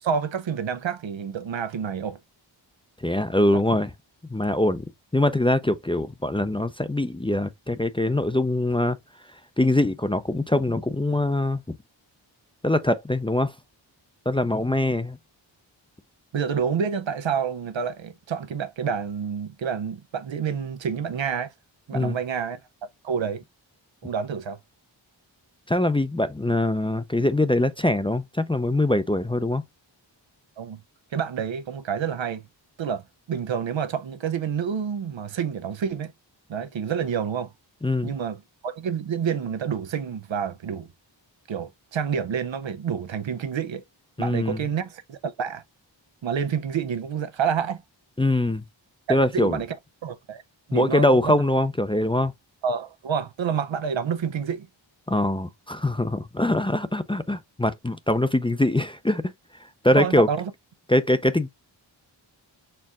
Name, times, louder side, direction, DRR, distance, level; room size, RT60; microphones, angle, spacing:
voice 1, 0.0-2.2 3.5-3.6 16.3-21.5 21.9-22.6 23.0-23.4 24.0-24.6 30.6-30.8 31.1-32.4 32.8-33.0 33.3-36.1 36.5-37.5 38.0-40.9 41.5-43.8 44.2-45.6 46.2-47.8 49.1-49.8 50.0-50.4 50.7-51.3 52.6-54.7 60.0-60.5, right 7 dB, 75° right, 0.6 m, -28 dB
voice 2, 3.0-3.9 4.3-4.8 5.1-9.0 9.6-11.6 12.6-13.5 14.3-15.2 21.9-22.2 25.7-29.6 37.8-38.1 44.2-44.6 48.2-48.6 49.1-49.6 50.7-52.3 55.1-59.3 59.8-60.3 60.9-61.5, left 1 dB, 10° left, 0.4 m, -23 dB
4.5 x 2.4 x 3.6 m
cardioid pair, 40°, 46 cm